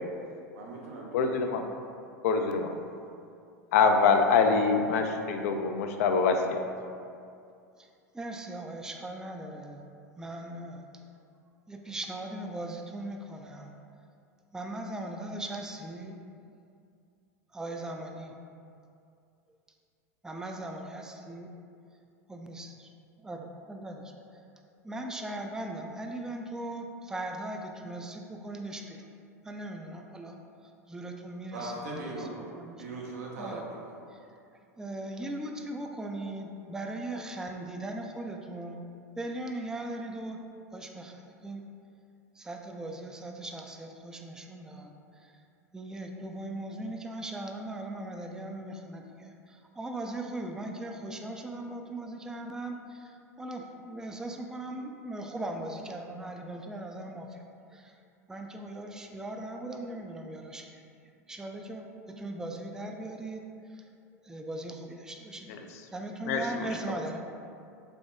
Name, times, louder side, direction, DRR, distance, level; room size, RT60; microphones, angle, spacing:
voice 1, 0.5-1.3 31.5-32.4 32.8-33.9, right 2 dB, 75° right, -2 dB, 0.7 m, -39 dB
voice 2, 1.1-1.7 2.2-2.8 3.7-6.6 66.3-66.6, left 5 dB, 70° left, 5 dB, 0.3 m, -24 dB
voice 3, 7.8-9.8 10.2-10.9 11.7-13.7 14.5-16.2 17.5-18.3 20.2-21.5 22.3-22.9 23.2-24.4 24.8-29.1 29.4-30.4 30.6-32.3 32.5-32.8 33.4-33.6 34.1-34.2 34.8-38.8 39.2-40.4 40.7-41.6 42.4-45.4 45.7-57.4 57.7-58.0 58.3-60.8 61.3-63.4 63.7-63.8 64.2-65.5 65.9-67.2, right 1 dB, 5° right, 3 dB, 0.3 m, -39 dB
3.5 x 3.4 x 2.5 m, 2.4 s
hypercardioid pair, 90°, 8 cm